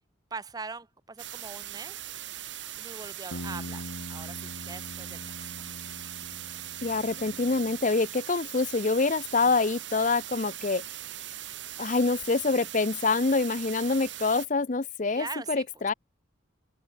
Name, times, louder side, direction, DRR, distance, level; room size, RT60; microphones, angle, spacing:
voice 1, 0.3-2.0 2.8-5.6 9.4-9.7 15.1-15.6, right 4 dB, 20° right, 0.6 m, -42 dB
sound 1, 1.2-14.5, right 12 dB, 70° right, 2.4 m, -40 dB
sound 2, 3.3-8.0, left 1 dB, 85° left, 3.7 m, -43 dB
voice 2, 6.8-10.8 11.8-15.9, left 3 dB, 40° left, 0.6 m, -26 dB
head